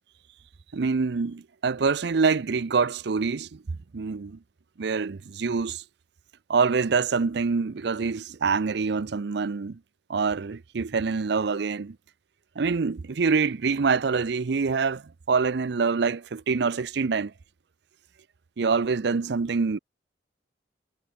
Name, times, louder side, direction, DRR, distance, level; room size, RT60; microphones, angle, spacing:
voice 1, 0.7-3.6 3.9-4.4 4.8-5.8 6.5-9.8 10.1-12.0 12.6-17.3 18.6-19.8, right 5 dB, 70° right, 0.5 m, -25 dB
head